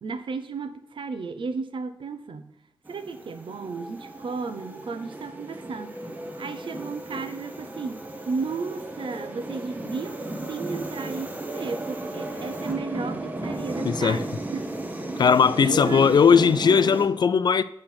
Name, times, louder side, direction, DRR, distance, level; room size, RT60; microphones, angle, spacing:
voice 1, 0.0-2.5 2.9-6.0 6.4-10.2 10.5-14.7 15.6-16.4, right 4 dB, 70° right, 0.7 m, -34 dB
sound 1, 2.9-17.1, right 2 dB, 20° right, 0.9 m, -35 dB
voice 2, 13.8-14.2 15.2-17.6, left 6 dB, 50° left, 0.3 m, -18 dB
7.8 x 4.4 x 5.7 m
wide cardioid pair, 155°, 9 cm